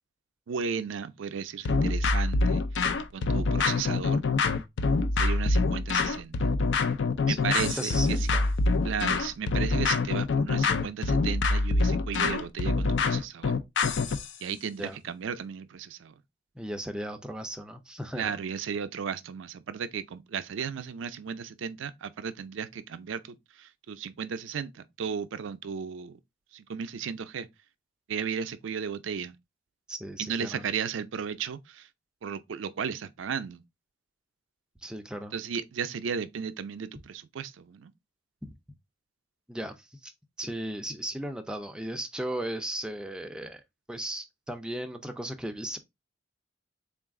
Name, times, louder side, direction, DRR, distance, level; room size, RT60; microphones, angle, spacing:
voice 1, 0.5-2.6 3.1-4.2 5.2-6.4 7.3-8.3 8.8-13.5 14.4-16.1 18.2-26.2 26.5-27.5 28.1-29.4 30.2-31.9 32.2-33.6 35.3-37.9, right 7 dB, 90° right, 0.4 m, -35 dB
sound 1, 1.7-14.3, left 3 dB, 70° left, 0.4 m, -25 dB
voice 2, 7.3-8.5 14.8-15.0 16.6-18.4 29.9-30.6 34.8-35.3 38.4-38.5 39.5-40.1 40.4-43.6 43.9-45.8, right 1 dB, 5° right, 0.4 m, -36 dB
3.8 x 2.4 x 3.5 m
head